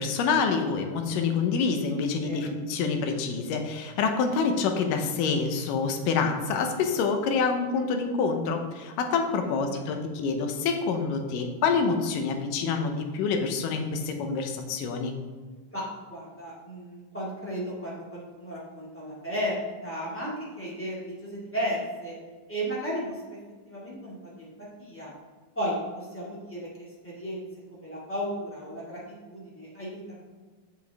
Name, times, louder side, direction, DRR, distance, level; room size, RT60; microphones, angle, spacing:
voice 1, 0.0-15.2, left 5 dB, 75° left, 5 dB, 2.3 m, -27 dB
voice 2, 16.1-22.1 22.5-23.2 23.7-24.5 24.8-25.1 25.5-26.7 27.0-27.4 27.7-30.2, equal, 10° left, -8 dB, 0.6 m, -34 dB
7.4 x 6.6 x 3.5 m, 1.5 s
omnidirectional pair, 4.1 m